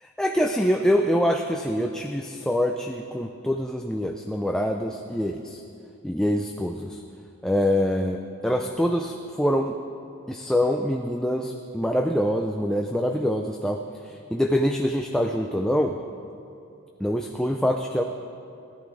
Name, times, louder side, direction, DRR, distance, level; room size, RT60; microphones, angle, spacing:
voice 1, 0.0-5.6 6.0-7.0 7.4-9.8 10.3-13.8 14.0-15.9 17.0-18.0, equal, 5° left, 3 dB, 0.4 m, -25 dB
16.5 x 12.5 x 4.9 m, 2.6 s
head